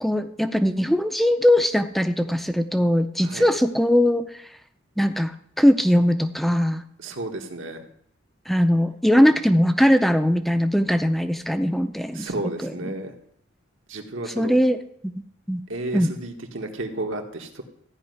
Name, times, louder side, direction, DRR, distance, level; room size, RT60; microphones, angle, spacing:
voice 1, 0.0-4.3 5.0-6.8 8.5-12.3 12.6-13.0 14.4-14.8 15.0-15.1 15.5-15.6 15.9-16.1, equal, ahead, 8 dB, 0.5 m, -20 dB
voice 2, 7.0-7.8 12.1-13.1 13.9-14.6 15.7-17.6, right 2 dB, 80° right, 4 dB, 1.8 m, -32 dB
14.5 x 5.4 x 9.4 m, 0.67 s
head